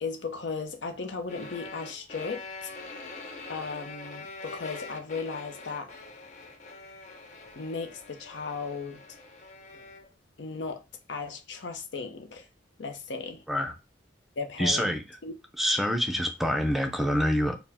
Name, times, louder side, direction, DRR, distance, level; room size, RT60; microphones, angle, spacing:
voice 1, 0.0-2.7 3.5-5.9 7.6-9.0 10.4-10.8 11.1-12.5 12.8-13.4 14.4-15.3, left 4 dB, 75° left, 0.7 m, -36 dB
sound 1, 1.3-10.1, left 3 dB, 40° left, 0.6 m, -44 dB
voice 2, 14.6-15.0 15.6-17.6, equal, ahead, 0.5 m, -26 dB
4.7 x 2.1 x 3.5 m
head